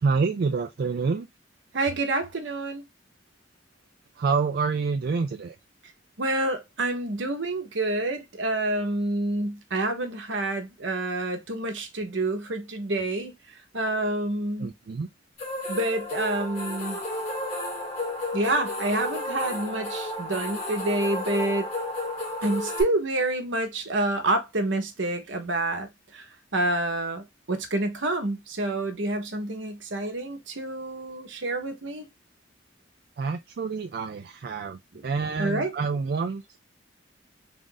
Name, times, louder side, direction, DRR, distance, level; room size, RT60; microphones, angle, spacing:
voice 1, 0.0-1.3 4.2-5.6 14.6-15.1 33.2-36.6, right 4 dB, 55° right, 0.3 m, -27 dB
voice 2, 1.7-2.8 6.2-13.3 13.7-14.7 15.7-17.0 18.3-21.7 22.4-26.2 26.5-32.1 34.9-35.0 35.4-35.7, right 2 dB, 80° right, 1.0 m, -28 dB
sound 1, 15.4-22.8, left 1 dB, 35° left, 1.9 m, -32 dB
3.7 x 2.5 x 3.8 m
head